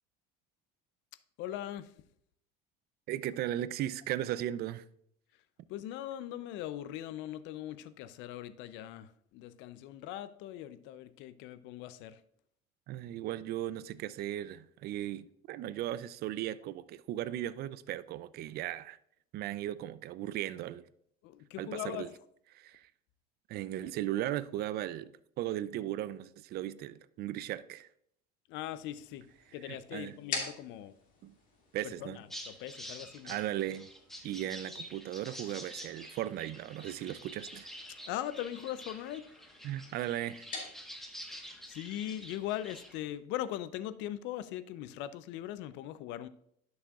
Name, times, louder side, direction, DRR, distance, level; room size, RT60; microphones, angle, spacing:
voice 1, 1.4-1.9 5.7-12.2 21.2-22.1 28.5-29.3 29.5-30.9 31.8-33.4 38.0-39.3 41.3-46.3, left 12 dB, 65° left, 0.5 m, -40 dB
voice 2, 3.1-4.8 12.9-19.0 19.3-20.8 21.6-22.1 22.5-22.9 23.5-25.1 25.4-27.9 29.6-30.2 31.2-31.3 31.7-32.2 33.2-33.9 34.2-37.7 39.6-40.5, right 13 dB, 50° right, 0.4 m, -37 dB
sound 1, 28.8-43.1, left 4 dB, 40° left, 2.3 m, -48 dB
sound 2, 32.3-42.9, equal, ahead, 1.2 m, -48 dB
11.0 x 6.2 x 2.4 m
supercardioid pair, 100°, 20 cm